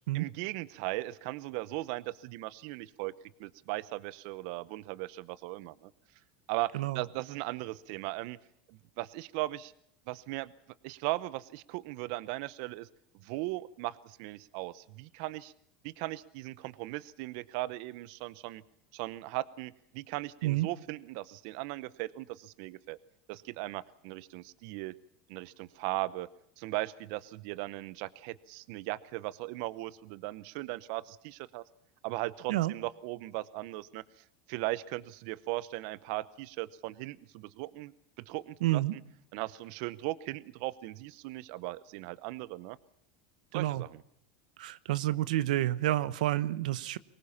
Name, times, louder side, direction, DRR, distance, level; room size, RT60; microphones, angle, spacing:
voice 1, 0.1-3.1 3.4-5.9 6.5-8.4 9.0-9.7 10.1-10.5 10.8-12.9 13.2-15.5 15.8-18.6 18.9-23.0 23.3-25.0 25.3-26.3 26.6-31.6 32.0-39.0 39.3-42.8 43.5-44.0, right 18 dB, 60° right, 18 dB, 0.8 m, -38 dB
voice 2, 38.6-38.9 43.5-43.8 44.6-47.0, right 15 dB, 90° right, 17 dB, 1.0 m, -29 dB
23.5 x 20.0 x 7.2 m, 0.69 s
supercardioid pair, 145°, 4 cm